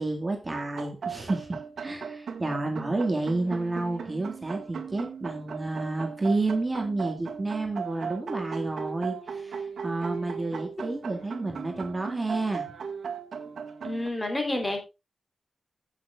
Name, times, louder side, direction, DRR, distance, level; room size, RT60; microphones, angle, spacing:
voice 1, 0.0-12.7, right 2 dB, 30° right, 2.0 m, -30 dB
sound 1, 0.5-14.1, right 6 dB, 90° right, 1.6 m, -37 dB
voice 2, 13.8-14.8, left 1 dB, 20° left, 3.5 m, -29 dB
16.0 x 6.6 x 2.4 m
wide cardioid pair, 115°, 0 cm